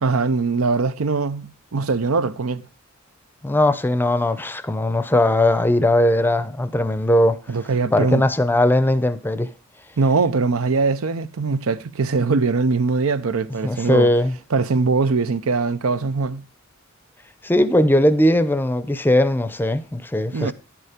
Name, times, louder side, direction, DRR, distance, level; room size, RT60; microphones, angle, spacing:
voice 1, 0.0-2.6 7.5-8.3 10.0-14.1 14.5-16.4 20.3-20.5, right 4 dB, 85° right, 0.6 m, -21 dB
voice 2, 3.4-7.4 7.9-9.5 13.6-14.3 17.4-20.5, left 1 dB, 10° left, 0.5 m, -19 dB
10.0 x 6.8 x 5.0 m
head